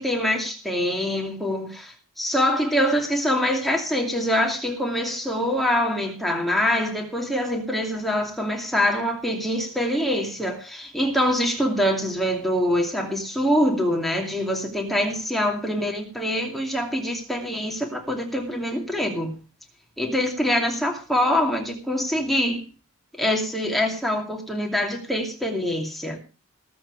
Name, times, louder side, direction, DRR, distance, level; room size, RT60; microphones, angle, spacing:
voice 1, 0.0-19.3 20.0-22.6 23.2-26.2, equal, ahead, 0 dB, 2.5 m, -24 dB
19.5 x 7.8 x 4.7 m, 0.35 s
head